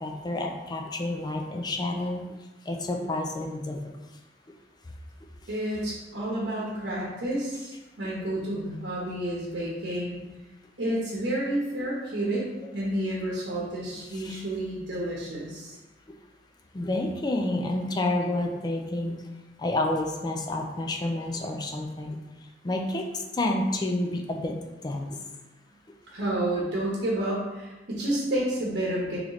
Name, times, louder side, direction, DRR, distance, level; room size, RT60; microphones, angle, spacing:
voice 1, 0.0-2.2 2.7-3.8 14.1-14.4 16.7-19.2 19.6-22.2 22.6-23.1 23.3-24.6 24.8-25.2, left 1 dB, 25° left, 2 dB, 0.4 m, -29 dB
voice 2, 5.5-10.2 10.8-12.4 12.7-15.8 26.1-29.2, right 1 dB, 75° right, -5 dB, 0.9 m, -30 dB
3.1 x 3.1 x 3.9 m, 1.1 s
head